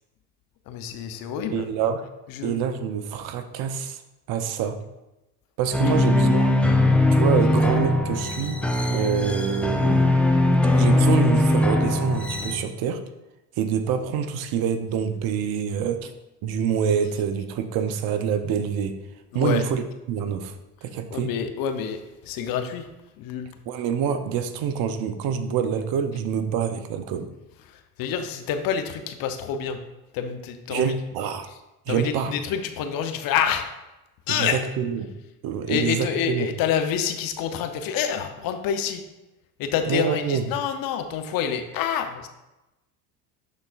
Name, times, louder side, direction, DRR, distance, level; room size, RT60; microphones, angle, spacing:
voice 1, 0.7-1.7 2.3-2.6 5.9-6.0 19.3-19.6 21.1-22.9 23.2-23.5 28.0-29.8 30.1-30.9 31.9-33.7 34.3-34.6 35.7-39.0 39.6-42.3, left 8 dB, 50° left, 7 dB, 0.8 m, -27 dB
voice 2, 1.5-2.0 2.4-4.0 4.3-4.8 5.6-6.6 7.1-8.6 8.9-10.0 10.7-13.0 13.6-16.1 16.4-19.0 19.3-19.8 20.1-20.5 20.8-21.3 23.7-27.3 30.7-31.5 31.9-32.3 34.3-35.1 35.4-36.5 39.9-40.5, right 7 dB, 55° right, 8 dB, 0.7 m, -26 dB
sound 1, 5.7-12.6, left 2 dB, 5° left, 0.6 m, -20 dB
11.5 x 4.0 x 2.5 m, 0.99 s
hypercardioid pair, 70°, 44 cm